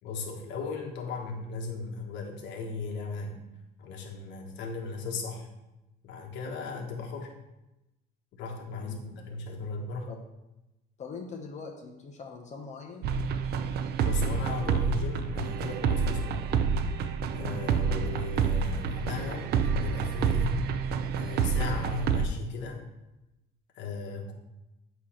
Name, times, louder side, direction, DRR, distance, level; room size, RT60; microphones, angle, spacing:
voice 1, 0.0-3.4 3.8-5.5 6.0-7.3 8.3-10.1 14.0-16.4 17.3-20.6 21.2-22.8 23.7-24.3, left 4 dB, 70° left, 1 dB, 1.4 m, -36 dB
voice 2, 8.8-9.2 10.1-10.2 11.0-13.1, left 5 dB, 40° left, 1 dB, 1.0 m, -42 dB
sound 1, 13.0-22.3, right 6 dB, 55° right, 0.5 m, -28 dB
8.4 x 3.1 x 5.8 m, 0.97 s
cardioid pair, 125°, 19 cm